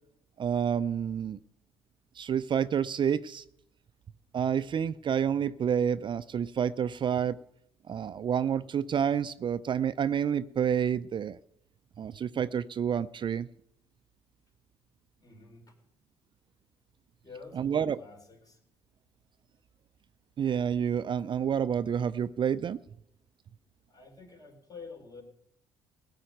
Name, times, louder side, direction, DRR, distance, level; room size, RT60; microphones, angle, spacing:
voice 1, 0.4-1.4 2.2-3.4 4.3-7.4 7.9-11.4 12.0-13.5 17.6-18.0 20.4-22.8, right 8 dB, 45° right, 14 dB, 0.5 m, -29 dB
voice 2, 15.2-15.8 17.2-18.6 23.9-25.2, left 4 dB, 35° left, 3 dB, 4.0 m, -49 dB
17.0 x 5.7 x 9.0 m, 0.76 s
hypercardioid pair, 55°, 11 cm